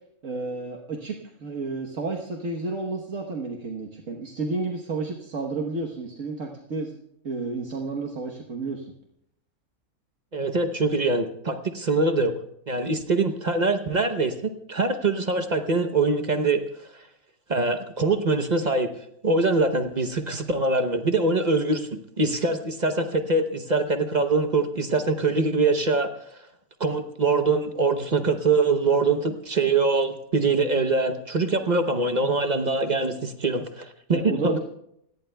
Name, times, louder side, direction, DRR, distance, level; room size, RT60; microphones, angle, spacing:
voice 1, 0.2-6.9 7.2-8.9 34.1-34.6, right 3 dB, 60° right, 0 dB, 1.5 m, -31 dB
voice 2, 10.3-12.3 12.7-14.3 14.7-17.0 17.5-18.9 19.2-26.1 26.8-34.6, right 3 dB, 35° right, 6 dB, 0.8 m, -23 dB
28.5 x 17.5 x 2.3 m, 0.75 s
omnidirectional pair, 1.5 m